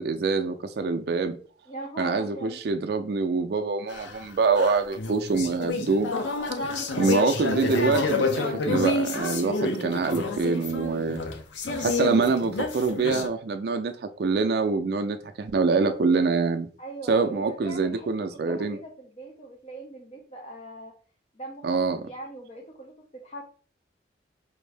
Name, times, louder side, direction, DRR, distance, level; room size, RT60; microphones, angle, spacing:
voice 1, 0.0-1.4 2.0-6.1 7.0-11.2 11.8-16.7 17.1-18.8 21.6-22.0, right 4 dB, 55° right, 7 dB, 0.4 m, -25 dB
voice 2, 1.7-2.6 7.0-7.4 16.8-18.1 18.4-20.9 21.3-23.5, right 2 dB, 35° left, 0 dB, 0.6 m, -40 dB
sound 1, 3.9-13.3, left 3 dB, 80° left, 0.6 m, -29 dB
4.6 x 2.6 x 3.3 m, 0.42 s
head